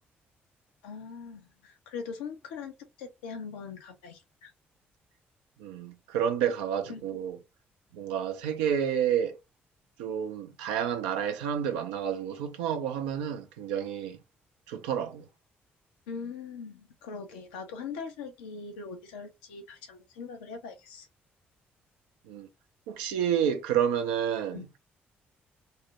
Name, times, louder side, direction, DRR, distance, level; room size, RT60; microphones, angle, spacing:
voice 1, 0.8-4.5 6.9-7.0 16.1-21.1 24.5-24.6, left 5 dB, 80° left, 0.6 m, -41 dB
voice 2, 5.6-7.4 7.9-9.4 10.0-14.2 14.7-15.3 22.3-22.5 22.9-24.6, right 8 dB, 80° right, 0.4 m, -30 dB
2.4 x 2.0 x 2.9 m
hypercardioid pair, 45°, 6 cm